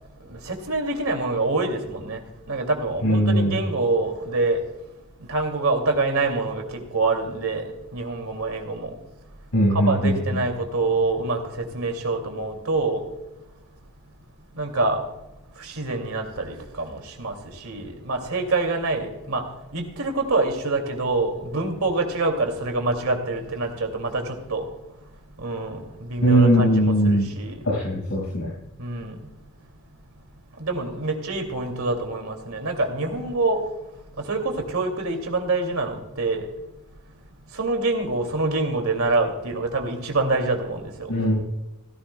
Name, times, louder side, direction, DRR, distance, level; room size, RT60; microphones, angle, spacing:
voice 1, 0.3-2.2 2.5-4.6 5.3-7.6 7.9-8.9 9.7-13.0 14.6-15.0 15.6-17.3 17.6-19.4 19.7-24.7 25.4-27.6 28.8-29.2 30.6-33.6 34.2-36.5 37.5-41.1, right 3 dB, 70° right, 4 dB, 2.4 m, -26 dB
voice 2, 3.0-3.6 9.5-10.2 26.2-27.3 27.6-28.5 41.1-41.4, equal, 85° left, -7 dB, 5.3 m, -19 dB
16.5 x 15.0 x 2.2 m, 0.97 s
head